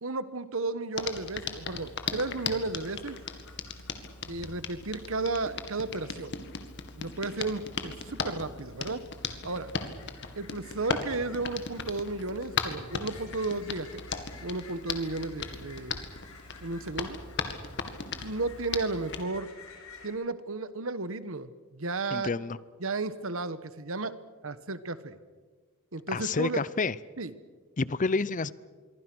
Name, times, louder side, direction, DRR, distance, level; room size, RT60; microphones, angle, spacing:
voice 1, 0.0-3.2 4.3-6.3 6.9-9.0 9.4-9.7 10.3-13.9 14.4-16.0 16.6-17.2 18.2-19.5 20.0-22.3 22.8-24.1 24.4-25.2 25.9-26.6 27.2-27.3, right 3 dB, 65° right, 1.3 m, -33 dB
Hands, 0.9-19.2, left 5 dB, 55° left, 2.0 m, -37 dB
sound 1, 2.0-20.1, left 4 dB, 75° left, 6.2 m, -54 dB
voice 2, 22.1-22.6 26.1-27.0 27.8-28.5, left 4 dB, 35° left, 0.6 m, -29 dB
26.5 x 23.0 x 6.2 m
head